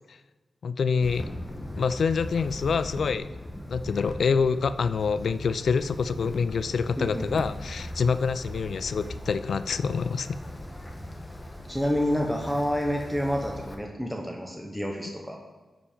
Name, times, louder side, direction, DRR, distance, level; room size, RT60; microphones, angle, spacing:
voice 1, 0.6-1.2 1.8-3.3 3.7-10.3, left 5 dB, 75° left, 13 dB, 0.3 m, -26 dB
Wind, 1.0-13.7, left 1 dB, 20° left, 1.2 m, -39 dB
voice 2, 7.0-7.4 11.7-15.4, equal, ahead, 1 dB, 0.9 m, -28 dB
11.0 x 5.1 x 5.0 m, 1.2 s
wide cardioid pair, 105°, 0 cm